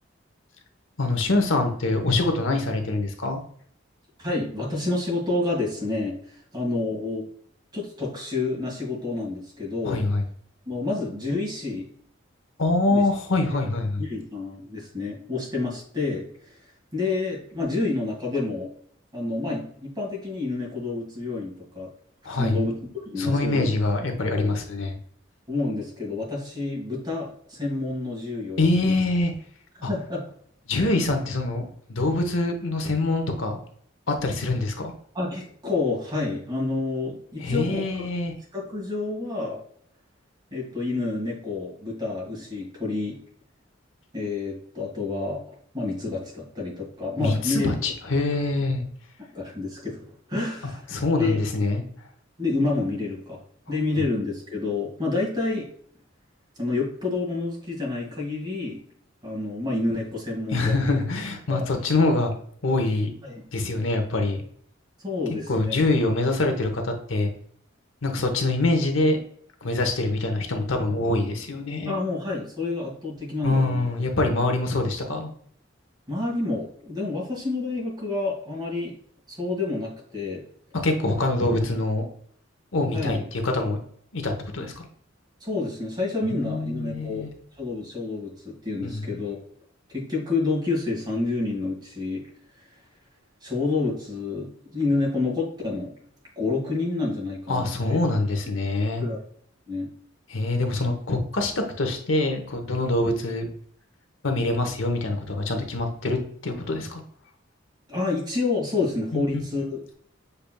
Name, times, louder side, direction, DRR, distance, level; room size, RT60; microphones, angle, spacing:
voice 1, 1.0-3.4 9.8-10.2 12.6-14.0 22.2-22.7 23.2-25.0 28.6-29.3 29.8-29.9 30.7-33.6 34.1-34.9 37.4-38.3 47.2-48.8 50.9-51.8 60.5-62.3 62.6-63.1 63.5-64.4 65.5-67.3 68.0-69.2 69.6-72.0 73.4-75.3 80.7-82.0 82.7-83.8 84.1-84.8 86.3-87.3 88.8-89.2 97.5-99.0 100.3-103.5 104.2-107.0 109.1-109.4, left 2 dB, 80° left, 5 dB, 0.9 m, -24 dB
voice 2, 4.2-6.2 6.5-7.3 7.7-10.0 10.7-11.9 12.9-13.0 14.0-16.3 16.9-18.7 19.1-21.9 22.3-22.7 23.1-23.7 24.3-24.6 25.5-29.0 29.8-30.2 35.1-37.8 38.5-39.6 40.5-43.2 44.1-45.4 45.7-47.7 49.3-50.0 50.3-50.8 51.2-51.4 52.4-53.4 53.7-55.7 56.6-58.8 59.2-60.7 61.5-61.7 63.2-63.4 65.0-65.8 71.9-73.9 74.4-74.5 76.1-78.9 79.3-80.4 82.9-83.2 85.4-87.3 87.6-89.4 89.9-92.2 93.4-95.9 96.4-98.0 99.0-99.2 99.7-99.9 107.9-109.9, left 3 dB, 20° right, -2 dB, 1.8 m, -28 dB
6.7 x 3.3 x 2.2 m, 0.62 s
head